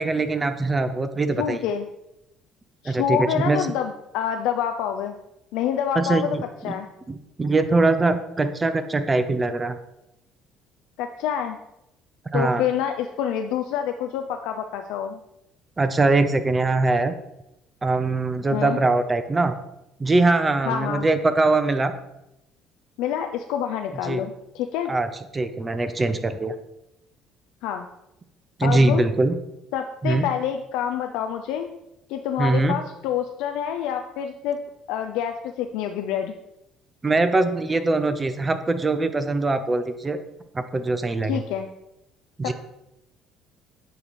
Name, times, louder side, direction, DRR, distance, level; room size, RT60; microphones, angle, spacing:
voice 1, 0.0-1.6 2.8-3.6 5.9-6.4 7.1-9.7 12.3-12.6 15.8-17.1 17.8-19.5 20.0-21.9 24.0-24.2 24.9-26.5 28.6-29.4 30.0-30.3 32.4-32.8 37.0-40.2 40.5-41.4 42.4-42.5, right 3 dB, 25° right, 10 dB, 0.5 m, -22 dB
voice 2, 1.4-1.8 2.8-5.1 5.5-6.4 6.6-6.9 11.0-11.6 12.3-15.2 18.5-18.8 20.7-21.1 23.0-24.9 27.6-27.9 28.6-29.0 29.7-31.7 32.1-34.6 34.9-36.3 41.3-41.7 42.4-42.5, left 9 dB, 75° left, 5 dB, 0.4 m, -27 dB
9.0 x 3.0 x 4.1 m, 0.87 s
supercardioid pair, 70°, 0 cm